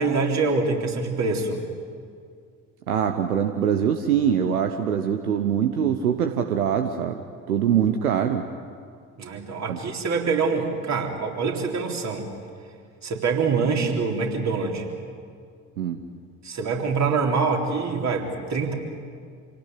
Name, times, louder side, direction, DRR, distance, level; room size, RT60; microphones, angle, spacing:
voice 1, 0.0-1.6 9.2-12.3 13.0-14.9 16.4-18.7, right 4 dB, 40° right, 1 dB, 3.8 m, -25 dB
voice 2, 2.9-8.5 9.7-9.8 15.8-16.0, right 8 dB, 75° right, 7 dB, 1.1 m, -23 dB
27.0 x 18.0 x 9.6 m, 2.2 s
figure-of-eight pair, 55°, 43 cm